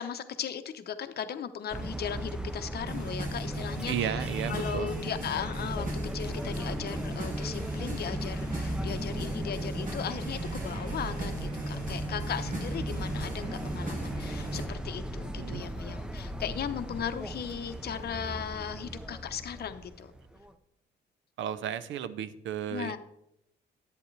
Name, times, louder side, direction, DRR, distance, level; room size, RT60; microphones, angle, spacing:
voice 1, 0.0-5.9 6.1-20.1 22.7-23.0, left 8 dB, 55° left, 9 dB, 0.8 m, -37 dB
sound 1, 1.7-20.5, right 1 dB, 5° right, 0.6 m, -37 dB
sound 2, 2.8-14.7, right 1 dB, 40° right, 1.9 m, -37 dB
voice 2, 3.9-4.9 15.4-15.7 21.4-23.0, right 9 dB, 75° right, 15 dB, 0.6 m, -34 dB
10.5 x 8.3 x 3.2 m, 0.79 s
cardioid pair, 90°, 20 cm